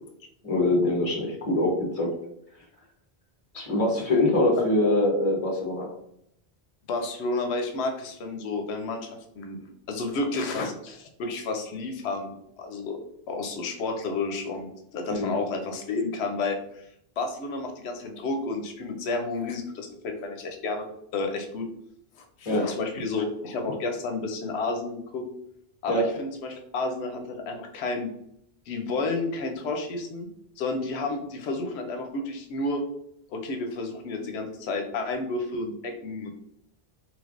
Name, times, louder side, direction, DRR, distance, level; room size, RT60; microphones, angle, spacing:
voice 1, 0.4-2.1 3.5-5.9 15.1-15.4 22.5-22.6 25.9-26.0, left 1 dB, 35° left, -2 dB, 0.9 m, -24 dB
voice 2, 6.9-9.1 9.4-13.0 13.3-16.9 17.2-20.9 21.1-21.7 22.2-25.3 25.8-28.1 28.7-30.3 30.6-32.8 33.3-36.3, left 3 dB, 85° left, 4 dB, 0.8 m, -31 dB
3.2 x 3.1 x 2.4 m, 0.73 s
omnidirectional pair, 1.1 m